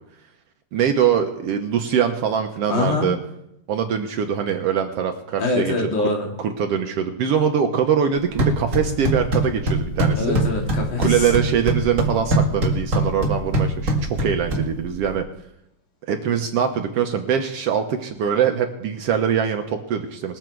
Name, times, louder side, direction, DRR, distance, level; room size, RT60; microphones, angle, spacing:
voice 1, 0.7-3.2 3.7-5.7 6.4-10.4 11.0-13.9 14.2-15.2 16.1-20.4, right 8 dB, 75° right, 5 dB, 1.4 m, -22 dB
voice 2, 2.7-3.1 5.4-6.4 10.2-11.3, left 3 dB, 70° left, 1 dB, 3.6 m, -24 dB
sound 1, 8.2-15.2, right 1 dB, 30° right, 1.6 m, -23 dB
21.5 x 7.3 x 4.6 m, 0.80 s
omnidirectional pair, 3.7 m